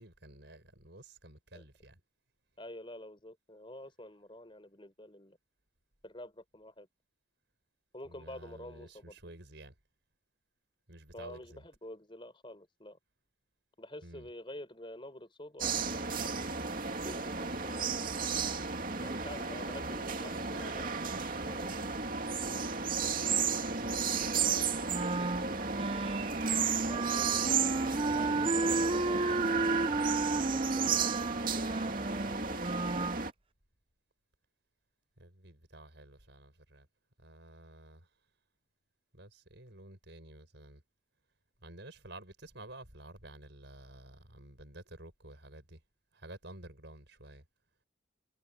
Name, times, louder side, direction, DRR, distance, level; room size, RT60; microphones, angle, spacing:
voice 1, 0.0-2.0 8.0-9.8 10.9-11.6 14.0-14.3 19.0-19.3 22.4-22.9 23.3-25.8 27.8-29.6 35.2-36.9 37.2-38.2 39.1-40.8 41.6-45.8 46.1-47.5, right 1 dB, 60° right, 5.9 m, -52 dB
voice 2, 2.6-5.4 6.0-6.9 7.9-9.1 11.1-13.0 13.8-16.2 17.0-18.1 19.0-21.7 26.9-29.7 30.5-32.0 32.3-33.3, left 1 dB, 25° left, 4.5 m, -48 dB
sound 1, 15.6-33.3, right 5 dB, 45° right, 2.6 m, -33 dB
Wind instrument woodwind instrument, 24.9-33.2, right 3 dB, 25° right, 0.5 m, -33 dB
head